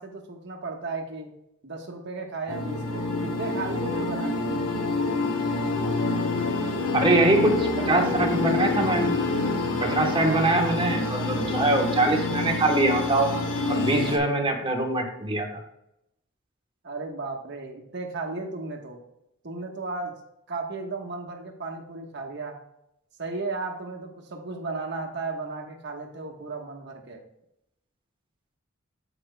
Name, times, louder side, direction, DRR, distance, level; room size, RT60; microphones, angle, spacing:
voice 1, 0.0-1.3 1.6-4.5 14.0-14.3 16.8-19.0 19.4-20.2 20.5-22.6 23.2-27.2, right 3 dB, 55° right, 1 dB, 1.2 m, -35 dB
sound 1, 2.5-14.2, left 3 dB, 80° left, 1.0 m, -27 dB
voice 2, 6.9-9.1 9.8-13.3 13.7-15.6, right 2 dB, 25° right, 2 dB, 1.1 m, -23 dB
13.0 x 5.0 x 2.2 m, 0.82 s
head